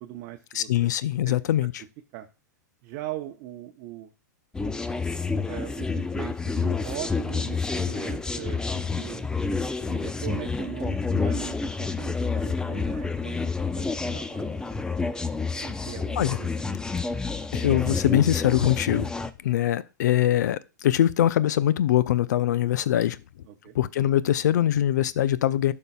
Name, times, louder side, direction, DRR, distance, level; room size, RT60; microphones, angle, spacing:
voice 1, 0.0-0.9 1.3-1.4 2.1-2.3 2.8-4.1 5.5-9.2 9.9-14.9 15.5-16.9 23.5-23.8, right 14 dB, 50° right, 0.7 m, -40 dB
voice 2, 0.5-1.8 16.2-16.4 17.5-19.1 19.4-23.2 23.7-25.7, left 12 dB, 70° left, 0.4 m, -23 dB
sound 1, 4.5-19.3, left 4 dB, 5° left, 0.4 m, -29 dB
12.0 x 5.4 x 2.3 m
hypercardioid pair, 105°, 10 cm